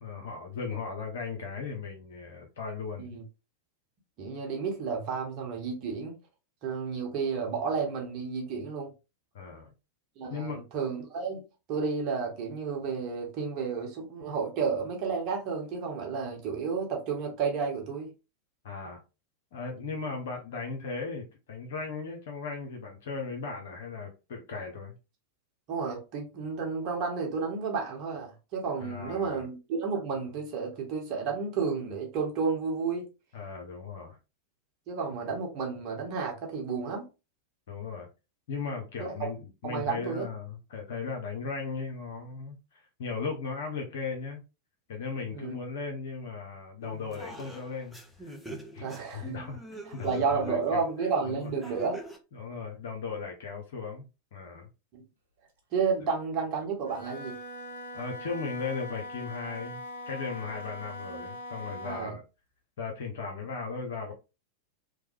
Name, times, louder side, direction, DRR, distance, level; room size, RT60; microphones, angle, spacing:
voice 1, 0.0-3.1 9.3-9.7 10.3-10.6 18.6-19.0 19.5-24.9 28.8-29.5 33.3-34.2 37.7-38.1 38.5-44.4 44.9-48.0 48.2-48.4 48.7-48.8 49.1-50.8 51.2-51.8 52.3-54.7 57.9-62.2 62.8-64.1, left 4 dB, 60° left, 0.7 m, -37 dB
voice 2, 4.2-6.2 6.6-8.9 10.2-11.4 11.7-18.1 19.8-19.9 25.7-33.1 34.9-37.1 39.0-39.3 39.6-40.3 45.3-45.6 48.8-49.3 49.9-52.0 54.9-55.0 55.7-57.4 61.1-61.2 61.8-62.2, right 5 dB, 40° right, 1.0 m, -31 dB
sound 1, 46.8-52.2, right 2 dB, ahead, 0.6 m, -44 dB
Wind instrument woodwind instrument, 56.8-62.2, left 1 dB, 65° right, 1.0 m, -42 dB
3.1 x 2.1 x 3.1 m
figure-of-eight pair, 90°, 0 cm